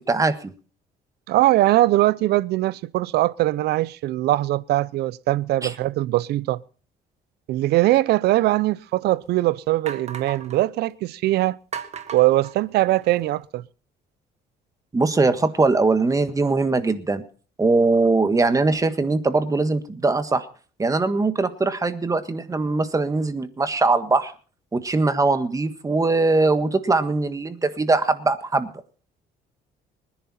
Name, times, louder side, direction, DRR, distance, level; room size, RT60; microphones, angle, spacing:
voice 1, 0.1-0.5 5.6-5.7 14.9-17.2 17.6-20.5 20.8-24.3 24.7-28.7, right 3 dB, 20° right, 1.6 m, -21 dB
voice 2, 1.3-6.6 7.5-11.6 12.1-13.6, right 16 dB, 75° right, 0.7 m, -21 dB
sound 1, 8.5-8.6 9.2-9.3 9.9-10.6 11.7-13.2, right 7 dB, 40° right, 1.7 m, -36 dB
24.5 x 10.5 x 4.3 m
cardioid pair, 110°, 17 cm